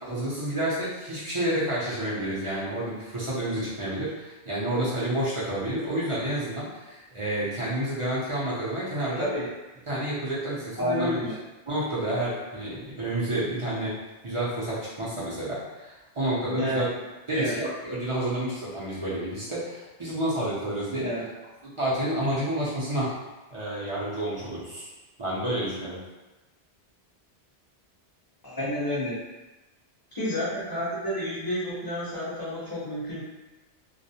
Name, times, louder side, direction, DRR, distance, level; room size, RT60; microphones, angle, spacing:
voice 1, 0.0-9.3 9.9-11.2 11.7-13.9 14.2-16.9 17.3-21.1 21.6-23.1 23.5-24.9 25.2-26.0, right 1 dB, 35° right, -8 dB, 0.5 m, -29 dB
voice 2, 9.1-9.4 10.8-11.3 16.4-16.8 17.3-17.5 21.0-21.2 28.4-29.2 30.1-33.2, left 1 dB, 20° left, -9 dB, 0.7 m, -30 dB
2.4 x 2.0 x 2.7 m, 1.1 s
omnidirectional pair, 1.2 m